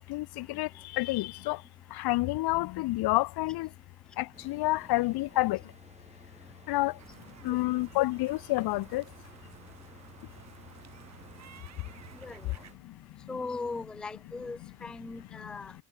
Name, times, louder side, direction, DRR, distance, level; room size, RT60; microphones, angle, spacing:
voice 1, 0.1-1.6 1.9-3.7 4.2-5.6 6.7-6.9 7.4-9.0, left 19 dB, 60° left, 0.5 m, -29 dB
sound 1, 4.3-12.8, right 3 dB, 15° right, 5.9 m, -57 dB
sound 2, 7.0-12.7, right 9 dB, 35° right, 1.6 m, -54 dB
voice 2, 13.3-15.7, left 3 dB, ahead, 0.4 m, -38 dB
cardioid pair, 145°, 44 cm